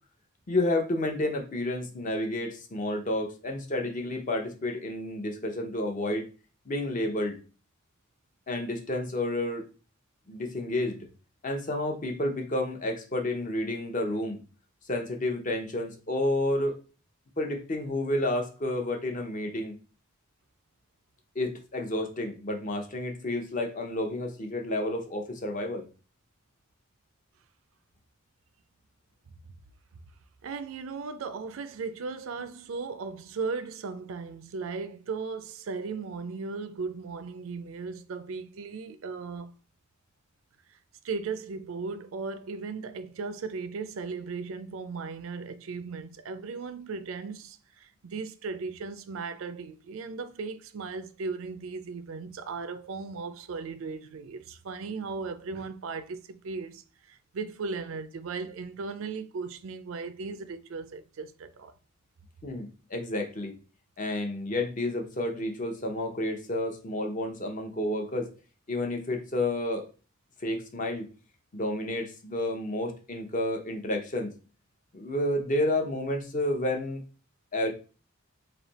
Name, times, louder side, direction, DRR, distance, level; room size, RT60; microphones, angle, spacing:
voice 1, 0.5-6.3 6.7-7.4 8.5-9.6 10.3-11.1 11.4-14.4 14.9-16.8 17.4-19.8 21.3-25.9 62.4-63.6 64.0-68.3 68.7-69.9 70.4-71.1 71.5-74.3 74.9-77.0 77.5-77.7, left 1 dB, 40° left, 0.7 m, -30 dB
voice 2, 30.4-39.5 41.0-56.8 57.1-61.7, right 4 dB, 75° right, 0.4 m, -37 dB
3.3 x 2.6 x 4.0 m
head